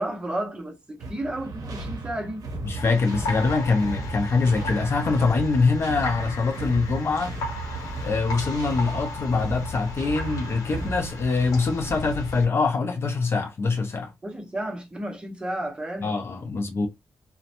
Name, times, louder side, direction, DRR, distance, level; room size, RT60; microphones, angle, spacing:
voice 1, 0.0-2.4 14.2-16.1, right 1 dB, 15° right, 0.7 m, -32 dB
sound 1, 1.0-11.7, right 3 dB, 65° right, 0.7 m, -35 dB
voice 2, 2.6-7.3 8.0-14.1 16.0-16.9, left 4 dB, 40° left, 0.4 m, -24 dB
sound 2, 2.8-12.5, left 2 dB, 65° left, 0.8 m, -36 dB
2.8 x 2.1 x 2.5 m
wide cardioid pair, 155°, 7 cm